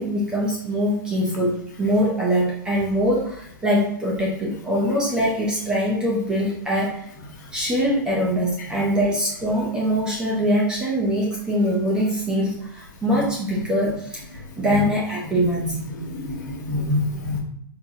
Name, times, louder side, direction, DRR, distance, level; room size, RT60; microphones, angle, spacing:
voice 1, 0.0-7.1 7.5-15.6, equal, 5° right, -3 dB, 0.4 m, -23 dB
voice 2, 15.6-17.4, left 1 dB, 55° left, -1 dB, 1.1 m, -27 dB
4.1 x 2.5 x 2.6 m, 0.72 s
hypercardioid pair, 170°, 12 cm